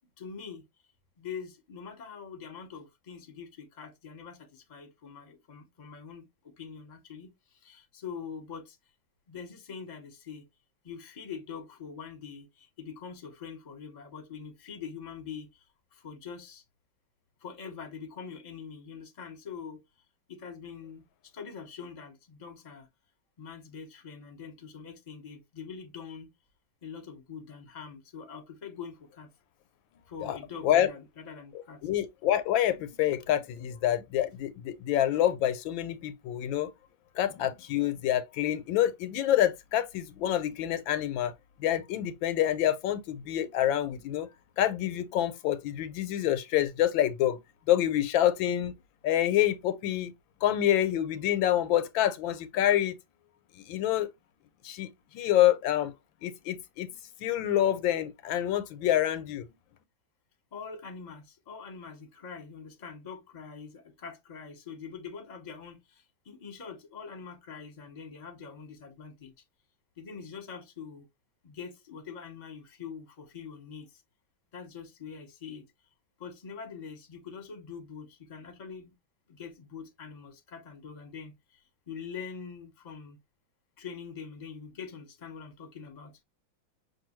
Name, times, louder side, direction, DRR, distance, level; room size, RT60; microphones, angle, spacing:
voice 1, 0.2-0.6 1.2-8.8 9.3-10.4 10.8-15.6 15.9-16.6 17.4-19.8 20.3-22.9 23.4-26.3 26.8-29.3 30.1-31.8 60.5-69.3 70.0-71.0 71.4-74.0 74.5-75.7 76.2-78.9 79.3-83.2 83.8-86.1, left 6 dB, 30° left, 0.9 m, -44 dB
voice 2, 31.8-36.7 37.2-41.3 41.6-44.3 44.6-47.4 47.7-48.7 49.0-50.1 50.4-52.9 53.7-54.1 54.6-55.9 56.2-56.9 57.2-59.4, left 12 dB, 80° left, 1.3 m, -27 dB
5.9 x 2.6 x 3.0 m
omnidirectional pair, 2.1 m